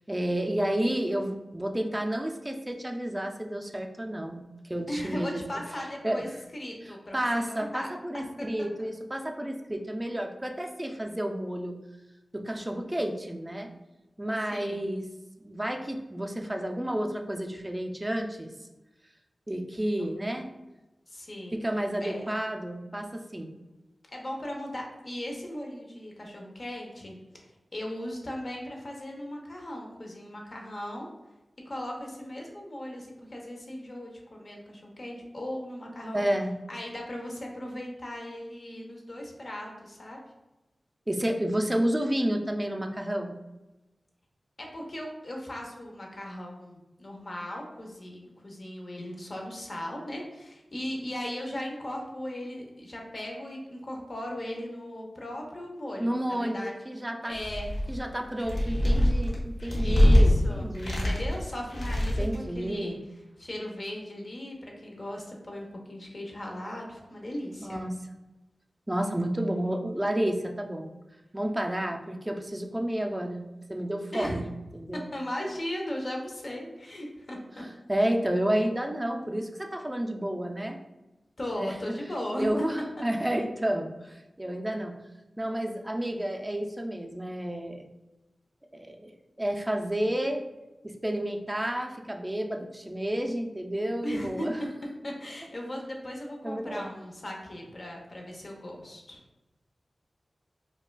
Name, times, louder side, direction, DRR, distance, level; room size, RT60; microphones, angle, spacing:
voice 1, 0.1-5.4 6.0-6.3 6.9-11.8 12.3-13.7 14.2-15.1 15.4-18.5 19.5-20.5 21.5-23.5 36.1-36.6 41.1-43.4 56.0-57.4 57.9-61.1 62.2-63.0 67.6-67.9 68.9-70.9 71.3-74.5 74.7-75.1 77.9-80.8 81.6-82.0 82.4-85.0 85.4-87.9 88.7-89.1 89.4-90.5 90.8-94.6 96.4-96.9, right 1 dB, 15° right, 3 dB, 0.4 m, -31 dB
voice 2, 4.9-7.9 8.1-8.5 14.5-15.0 21.1-21.6 22.0-22.3 24.1-27.2 27.7-31.1 31.7-36.2 36.7-40.2 44.6-56.7 57.3-57.7 59.8-63.0 63.4-67.8 74.1-74.4 75.1-77.6 81.4-82.5 94.0-94.5 95.0-99.2, left 1 dB, 50° left, 0 dB, 0.8 m, -37 dB
sound 1, 57.3-58.0 58.4-60.3 60.7-61.4 61.7-62.4, left 1 dB, 75° left, 0.8 m, -23 dB
4.7 x 2.3 x 2.2 m, 1.0 s
wide cardioid pair, 65°, 0 cm